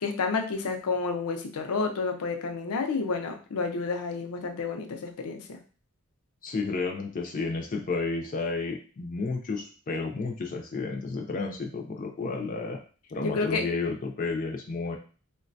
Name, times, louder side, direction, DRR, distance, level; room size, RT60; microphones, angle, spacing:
voice 1, 0.0-5.6 12.2-12.5 13.2-13.6, left 4 dB, 90° left, 4 dB, 0.5 m, -30 dB
voice 2, 6.4-12.8 13.1-15.0, left 3 dB, 40° left, 1 dB, 0.4 m, -31 dB
3.8 x 2.2 x 2.5 m, 0.38 s
head